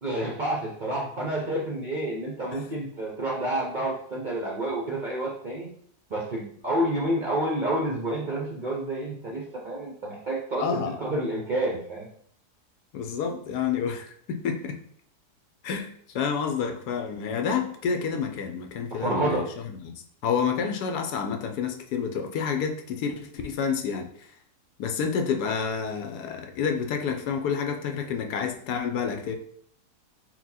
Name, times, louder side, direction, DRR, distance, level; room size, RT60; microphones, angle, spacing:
voice 1, 0.0-5.7 6.1-12.1 18.9-19.5, right 1 dB, 50° right, -3 dB, 0.5 m, -29 dB
voice 2, 10.6-10.9 12.9-14.8 15.6-19.4 19.8-24.1 24.8-29.3, left 6 dB, 80° left, 4 dB, 1.1 m, -29 dB
4.3 x 2.2 x 4.1 m, 0.62 s
omnidirectional pair, 1.7 m